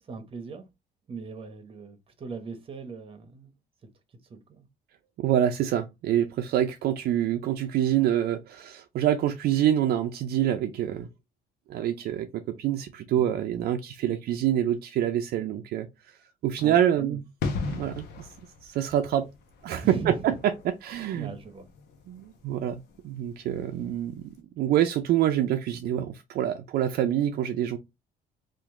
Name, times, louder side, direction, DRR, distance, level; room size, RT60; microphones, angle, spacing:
voice 1, 0.1-0.6 1.1-3.5 4.3-4.7 13.1-13.3 16.6-17.2 19.8-20.2 21.1-21.7, right 4 dB, 35° right, 0.8 m, -39 dB
voice 2, 5.2-11.1 11.7-15.9 16.4-17.2 17.6-18.3 18.6-19.3 19.6-21.3 22.1-24.3 24.6-27.8, right 11 dB, 65° right, 0.5 m, -26 dB
sound 1, 17.4-23.9 24.2-24.3, left 4 dB, 80° left, 0.9 m, -38 dB
2.9 x 2.5 x 3.5 m
cardioid pair, 110°, 17 cm